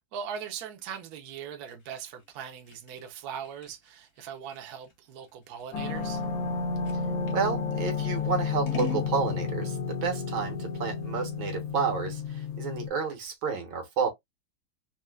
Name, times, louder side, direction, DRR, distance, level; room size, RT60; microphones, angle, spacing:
voice 1, 0.1-6.2, right 8 dB, 60° right, 1.1 m, -40 dB
Scissors, 1.3-7.4 8.0-9.1, left 3 dB, 45° left, 0.9 m, -43 dB
sound 1, 5.7-12.9, left 5 dB, 75° left, 1.6 m, -31 dB
voice 2, 7.3-14.1, right 6 dB, 75° right, 1.9 m, -30 dB
4.3 x 2.3 x 2.3 m
omnidirectional pair, 2.2 m